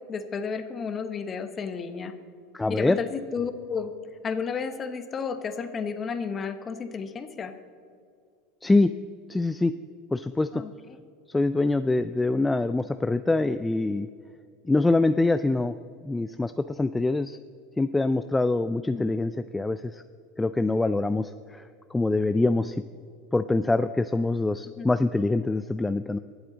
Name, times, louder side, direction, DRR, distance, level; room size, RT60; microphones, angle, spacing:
voice 1, 0.1-2.1 2.7-3.9 4.2-7.5 10.5-10.7 18.9-19.2 24.8-24.9, left 5 dB, 30° left, 9 dB, 1.1 m, -32 dB
voice 2, 2.5-3.0 8.6-8.9 9.3-9.7 10.1-10.6 11.3-14.1 14.7-15.7 16.0-17.4 17.8-20.0 20.4-21.6 21.9-22.8 23.3-26.2, left 2 dB, 10° left, 11 dB, 0.3 m, -24 dB
23.0 x 8.0 x 4.0 m, 2.3 s
supercardioid pair, 120°, 0 cm